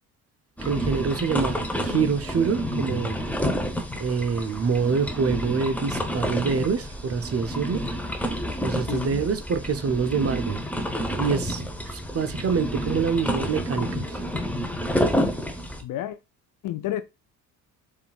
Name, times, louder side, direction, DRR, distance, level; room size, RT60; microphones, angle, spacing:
sound 1, 0.6-15.8, equal, 5° left, 0.8 m, -29 dB
voice 1, 0.6-3.2 4.0-7.8 8.6-10.6 11.2-14.2, right 5 dB, 30° right, 0.7 m, -26 dB
voice 2, 8.9-9.2 15.8-16.2 16.6-17.0, left 13 dB, 45° left, 0.5 m, -30 dB
6.7 x 2.6 x 2.4 m
figure-of-eight pair, 50°, 49 cm